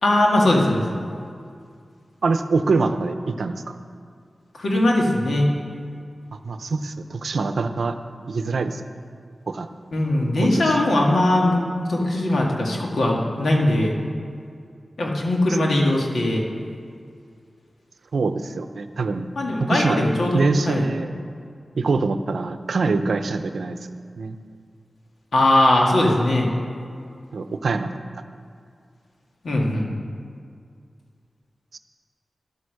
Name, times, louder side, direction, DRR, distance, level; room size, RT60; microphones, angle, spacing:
voice 1, 0.0-0.8 4.6-5.5 9.9-11.6 11.9-13.9 15.0-16.4 19.4-20.9 25.3-26.5 29.4-29.9, left 1 dB, 80° left, -1 dB, 1.9 m, -20 dB
voice 2, 2.2-3.8 6.4-7.9 8.3-8.8 9.5-9.7 10.4-10.9 18.1-19.3 19.6-20.0 20.3-21.1 21.8-23.8 24.2-24.4 27.3-27.9 31.7-31.8, right 3 dB, 80° right, 9 dB, 0.6 m, -24 dB
12.0 x 8.2 x 6.5 m, 2.3 s
wide cardioid pair, 65°, 0 cm